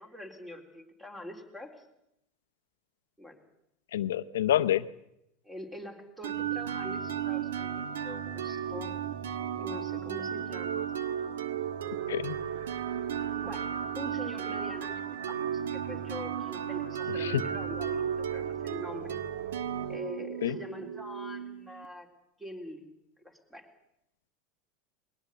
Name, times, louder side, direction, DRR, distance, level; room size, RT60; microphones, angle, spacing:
voice 1, 0.0-1.8 3.2-3.4 5.4-9.0 9.6-10.9 11.8-12.3 13.4-19.2 19.9-22.1 22.4-22.9 23.2-23.7, left 1 dB, 5° right, 5 dB, 3.9 m, -44 dB
voice 2, 3.9-4.9 12.1-12.4 17.1-17.4 20.4-20.6, left 11 dB, 90° left, 13 dB, 0.9 m, -28 dB
sound 1, 6.2-21.9, right 8 dB, 90° right, 1.4 m, -34 dB
21.5 x 18.0 x 8.3 m, 0.81 s
supercardioid pair, 110°, 0 cm